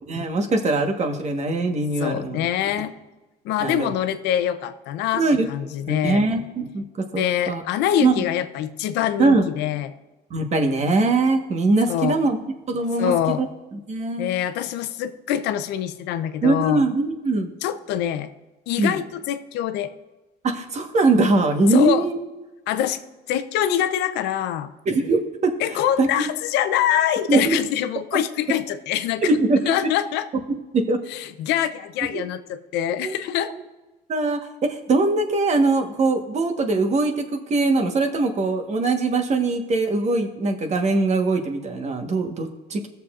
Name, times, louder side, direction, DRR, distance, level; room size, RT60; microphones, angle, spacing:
voice 1, 0.1-2.4 3.6-3.9 5.2-5.5 5.9-6.8 7.1-7.6 8.0-8.2 9.2-9.4 10.3-12.4 12.7-13.5 13.9-14.3 16.4-17.5 18.8-19.0 20.4-22.2 24.9-25.5 26.0-26.1 27.3-27.6 29.3-29.7 30.5-31.0 32.1-32.2 33.0-33.1 33.5-33.6 34.1-37.2 37.5-42.9, right 3 dB, 40° right, 4 dB, 1.3 m, -21 dB
voice 2, 2.0-2.9 3.4-6.2 7.1-9.9 11.9-12.2 13.0-13.4 14.2-16.8 17.6-18.3 18.7-19.9 21.7-22.1 22.7-23.0 23.3-24.7 25.6-29.3 29.7-30.3 31.1-33.5, left 11 dB, 85° left, 11 dB, 0.6 m, -24 dB
17.0 x 6.9 x 2.5 m, 1.1 s
cardioid pair, 110°, 17 cm